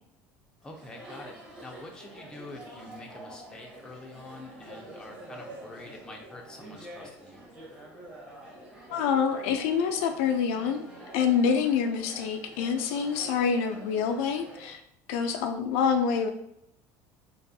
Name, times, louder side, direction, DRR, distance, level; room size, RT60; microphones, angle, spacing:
voice 1, 0.6-1.3 1.6-7.5, left 2 dB, 10° left, 0 dB, 0.4 m, -46 dB
Chatter, 0.6-14.8, right 1 dB, 10° right, 0.8 m, -47 dB
voice 2, 8.9-10.8 11.1-14.8 15.1-16.3, left 6 dB, 85° left, 5 dB, 0.4 m, -26 dB
2.5 x 2.3 x 2.6 m, 0.76 s
cardioid pair, 145°, 7 cm